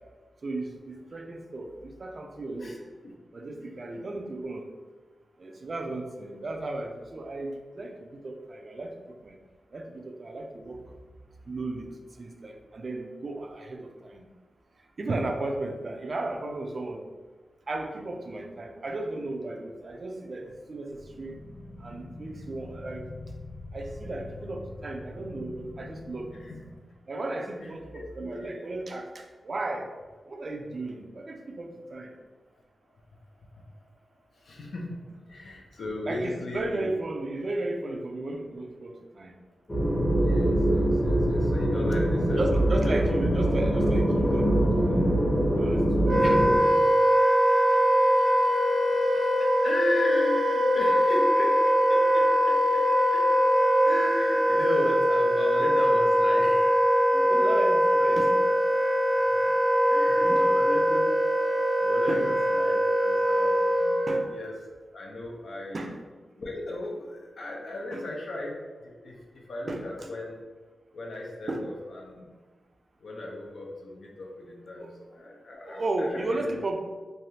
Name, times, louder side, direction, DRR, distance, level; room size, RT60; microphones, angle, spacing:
voice 1, 0.4-2.8 3.3-4.7 5.4-8.9 9.2-9.4 9.7-10.8 11.5-11.9 12.2-14.3 15.0-17.1 17.7-21.4 21.8-23.1 23.7-26.3 27.1-29.9 30.3-32.1 36.1-39.3 42.4-45.1 45.5-46.2 57.1-58.3 60.1-60.5 62.1-62.3 64.1-64.3 65.7-66.0 67.9-68.0 69.7-70.1 71.5-71.7 74.8-74.9 75.6-76.8, right 2 dB, 50° right, 3 dB, 0.4 m, -34 dB
voice 2, 3.6-4.0 26.4-26.6 27.6-27.7 28.0-28.6 33.5-33.6 34.4-35.0 35.3-36.9 40.2-42.5 42.8-43.0 43.3-43.4 46.2-46.7 47.7-47.8 48.4-48.5 49.1-51.6 51.9-52.8 53.1-53.2 53.8-57.1 59.9-61.0 61.5-64.0 64.3-64.5 64.9-65.9 66.4-69.2 69.5-70.4 70.9-72.2 73.0-76.4, left 1 dB, 75° left, -1 dB, 0.5 m, -36 dB
sound 1, 20.9-26.8, left 2 dB, 40° left, 1.1 m, -44 dB
sound 2, 39.7-46.6, right 1 dB, 25° left, 0.7 m, -23 dB
Wind instrument woodwind instrument, 46.0-64.3, equal, 80° right, 0.8 m, -22 dB
3.2 x 2.3 x 2.7 m, 1.3 s
cardioid pair, 70°, 0 cm